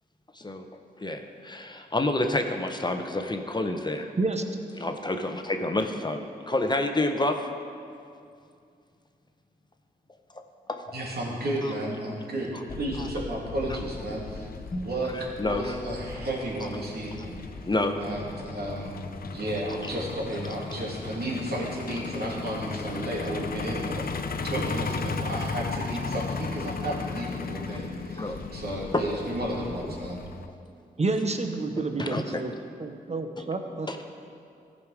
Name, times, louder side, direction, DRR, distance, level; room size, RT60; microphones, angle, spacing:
voice 1, 0.3-0.7 1.0-4.1 4.8-7.5 10.7-10.8 11.6-11.7 12.5-12.6 13.0-13.1 14.7-14.9 15.4-15.8 16.6-16.7 17.7-18.0 28.2-28.4 28.9-29.1 32.0-32.4 33.4-33.5 33.9-34.0, left 2 dB, 25° left, 5 dB, 0.9 m, -28 dB
voice 2, 10.9-14.5 14.8-17.4 18.0-30.2, right 1 dB, 60° right, -4 dB, 2.7 m, -33 dB
Truck, 12.7-30.5, left 4 dB, 55° left, 0.7 m, -36 dB
voice 3, 31.0-32.5 32.8-34.0, right 3 dB, 40° right, 6 dB, 1.1 m, -29 dB
15.0 x 5.3 x 4.9 m, 2.4 s
supercardioid pair, 40°, 18 cm